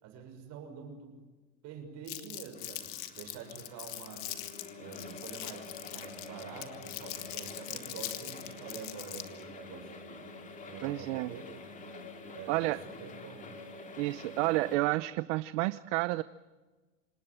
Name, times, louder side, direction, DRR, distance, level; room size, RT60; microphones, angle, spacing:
voice 1, 0.0-1.2 1.6-4.3 4.8-10.3 10.6-11.4 12.3-13.5, right 6 dB, 45° right, 5 dB, 6.5 m, -47 dB
Crumpling crinkling, 2.1-9.4, left 15 dB, 60° left, 2.4 m, -42 dB
sound 1, 2.5-14.8, left 3 dB, 20° left, 2.6 m, -47 dB
voice 2, 10.8-11.3 12.5-12.8 14.0-16.2, right 19 dB, 70° right, 15 dB, 0.8 m, -30 dB
27.5 x 19.0 x 9.1 m, 1.3 s
cardioid pair, 165°, 38 cm